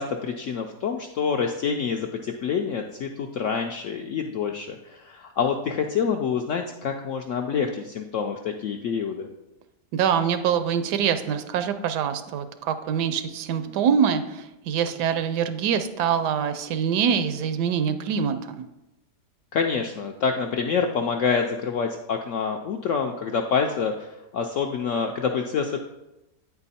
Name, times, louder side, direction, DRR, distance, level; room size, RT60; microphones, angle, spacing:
voice 1, 0.0-9.3 19.5-25.8, left 6 dB, 75° left, 3 dB, 0.7 m, -27 dB
voice 2, 9.9-18.6, right 7 dB, 80° right, 10 dB, 1.2 m, -24 dB
8.8 x 4.5 x 4.2 m, 0.94 s
omnidirectional pair, 1.8 m